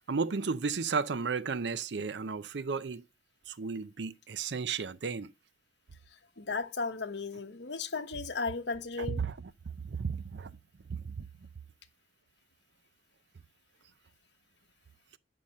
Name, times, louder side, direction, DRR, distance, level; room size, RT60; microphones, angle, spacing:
voice 1, 0.1-3.0 3.5-5.3 9.2-9.3 9.8-10.5 10.9-11.3, right 5 dB, 75° right, 0.6 m, -33 dB
voice 2, 6.4-9.2, left 4 dB, 75° left, 1.3 m, -35 dB
8.6 x 5.8 x 6.5 m
head